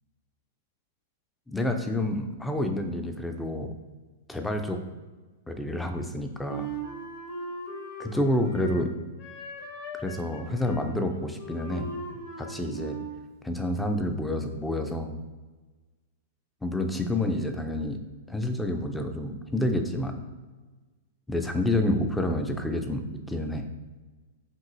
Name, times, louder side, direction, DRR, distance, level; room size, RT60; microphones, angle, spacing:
voice 1, 1.5-3.7 4.3-4.8 5.5-6.7 8.0-8.9 9.9-11.9 12.4-13.0 13.4-15.2 16.6-18.0 18.3-20.2 21.3-23.7, left 1 dB, 5° left, 5 dB, 0.4 m, -28 dB
Wind instrument woodwind instrument, 6.5-8.9 9.2-13.3, right 2 dB, 45° left, 1.0 m, -39 dB
5.3 x 2.6 x 2.6 m, 1.3 s
figure-of-eight pair, 105°, 0 cm